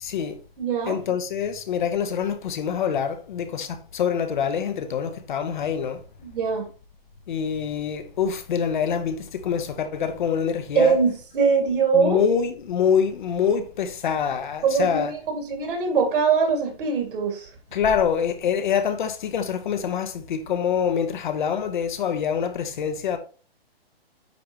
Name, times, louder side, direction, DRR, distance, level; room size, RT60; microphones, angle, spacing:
voice 1, 0.0-0.3 0.9-3.7 3.9-6.0 7.3-11.0 11.9-15.1 17.7-23.2, left 7 dB, 50° left, 0.9 m, -25 dB
voice 2, 0.6-1.0 6.2-6.7 10.8-12.2 14.6-17.5, right 5 dB, 55° right, 2.3 m, -22 dB
9.2 x 3.4 x 3.0 m
hypercardioid pair, 155°, 31 cm